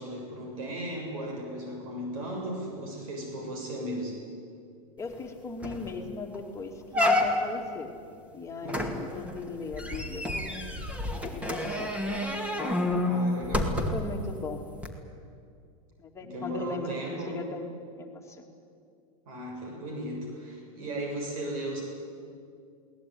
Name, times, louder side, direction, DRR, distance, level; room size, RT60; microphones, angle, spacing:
voice 1, 0.0-4.2 8.6-9.0 13.0-13.8 16.2-17.4 19.3-21.8, right 1 dB, 70° right, 1 dB, 7.2 m, -36 dB
voice 2, 5.0-7.9 8.3-10.8 11.3-11.9 12.6-12.9 13.9-14.6 16.0-17.7 18.0-18.4, left 3 dB, 15° left, 1 dB, 2.6 m, -38 dB
sound 1, 5.2-5.3 5.6-5.9 6.3-6.4 6.9-7.7 8.7-14.2 14.8-14.9, left 1 dB, 5° right, 2.3 m, -29 dB
22.0 x 18.5 x 9.5 m, 2.4 s
supercardioid pair, 130°, 18 cm